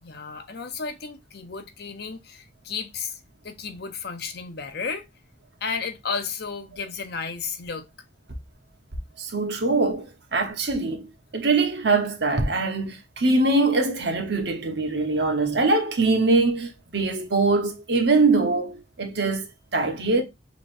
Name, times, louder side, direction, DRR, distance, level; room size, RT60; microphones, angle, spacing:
voice 1, 0.0-5.0 5.6-7.9, left 5 dB, 60° left, 0.8 m, -33 dB
voice 2, 9.2-11.1 11.3-20.2, right 3 dB, 65° right, 1.0 m, -23 dB
6.1 x 3.0 x 2.6 m
head